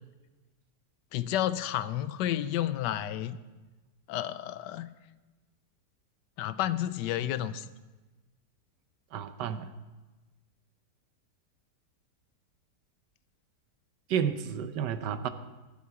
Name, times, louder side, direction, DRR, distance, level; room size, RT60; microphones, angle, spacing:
voice 1, 1.1-3.4 4.1-4.9 6.4-7.7, left 12 dB, 90° left, 14 dB, 1.3 m, -31 dB
voice 2, 9.1-9.7 14.1-15.3, right 8 dB, 85° right, 11 dB, 1.4 m, -31 dB
16.0 x 11.0 x 4.8 m, 1.2 s
omnidirectional pair, 1.8 m